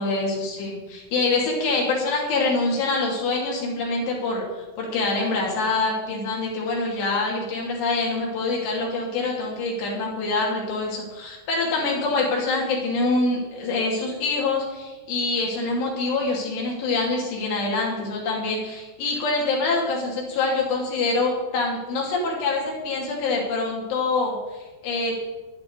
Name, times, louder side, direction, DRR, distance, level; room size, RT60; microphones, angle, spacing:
voice 1, 0.0-25.2, left 3 dB, 80° left, -2 dB, 5.2 m, -25 dB
13.0 x 11.5 x 4.8 m, 1.2 s
omnidirectional pair, 4.8 m